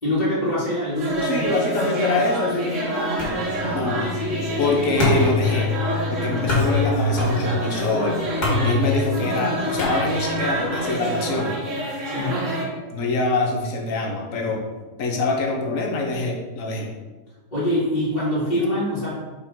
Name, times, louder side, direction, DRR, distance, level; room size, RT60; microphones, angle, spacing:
voice 1, 0.0-1.5 8.5-8.7 12.0-12.4 17.5-19.2, left 1 dB, 25° left, -13 dB, 2.5 m, -24 dB
sound 1, 0.9-12.7, right 1 dB, 50° right, 1.8 m, -27 dB
voice 2, 1.2-2.8 3.7-4.0 4.6-5.7 6.1-8.3 8.6-11.5 12.9-14.6 15.0-16.9, left 3 dB, 55° left, 1 dB, 1.5 m, -24 dB
sound 2, 3.2-10.6, left 2 dB, 85° left, 2.8 m, -25 dB
5.0 x 5.0 x 5.4 m, 1.2 s
omnidirectional pair, 1.7 m